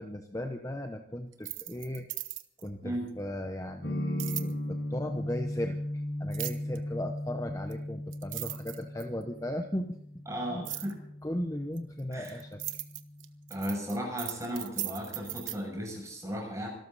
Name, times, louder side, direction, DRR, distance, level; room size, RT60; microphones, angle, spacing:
voice 1, 0.0-2.1 2.6-5.8 6.2-10.0 10.5-10.6 11.2-12.6, left 1 dB, 15° left, 5 dB, 0.9 m, -36 dB
sound 1, 1.3-2.7 4.2-4.5 6.3-6.8 7.7-7.8 8.1-9.2 10.6-10.9 11.8-15.6, right 15 dB, 90° right, 1.1 m, -38 dB
sound 2, 3.8-13.6, left 1 dB, 80° left, 4.5 m, -38 dB
voice 2, 10.3-11.0 12.1-12.4 13.5-16.7, equal, 15° right, 0 dB, 7.0 m, -35 dB
25.5 x 13.0 x 4.1 m, 0.70 s
head